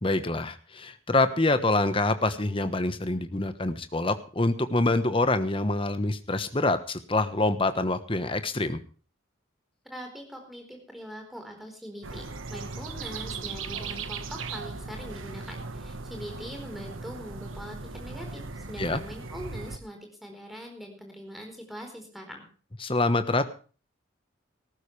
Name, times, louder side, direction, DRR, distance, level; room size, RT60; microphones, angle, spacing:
voice 1, 0.0-8.8 18.8-19.0 22.8-23.5, left 2 dB, 25° left, 11 dB, 1.2 m, -26 dB
voice 2, 9.9-12.2 12.5-22.5, equal, ahead, 3 dB, 4.3 m, -42 dB
sound 1, 12.0-19.8, right 4 dB, 85° right, 1.4 m, -38 dB
18.5 x 14.5 x 3.3 m, 0.38 s
head